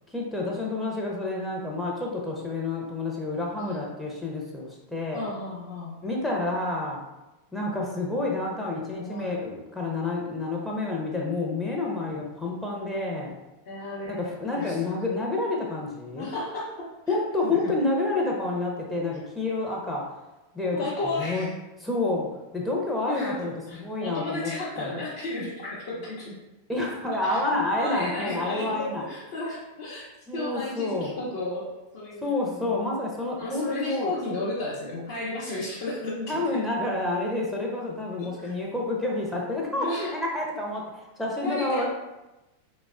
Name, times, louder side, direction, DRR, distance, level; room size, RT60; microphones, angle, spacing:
voice 1, 0.1-5.3 6.0-7.0 7.5-13.4 14.1-16.3 17.1-20.1 20.5-20.9 21.2-21.5 21.8-22.3 22.5-24.5 24.8-24.9 26.7-29.0 30.3-31.2 32.2-34.1 36.3-41.9, left 2 dB, 5° left, -3 dB, 0.5 m, -29 dB
voice 2, 5.1-6.0 8.7-9.4 13.7-14.3 14.5-14.8 16.2-17.2 17.4-17.8 20.7-21.5 23.1-26.3 27.3-27.4 27.8-31.7 31.9-33.0 33.4-36.4 38.2-38.5 39.7-40.1 41.4-41.9, left 2 dB, 55° left, -8 dB, 0.6 m, -33 dB
3.2 x 2.0 x 2.4 m, 1.0 s
figure-of-eight pair, 90°, 0 cm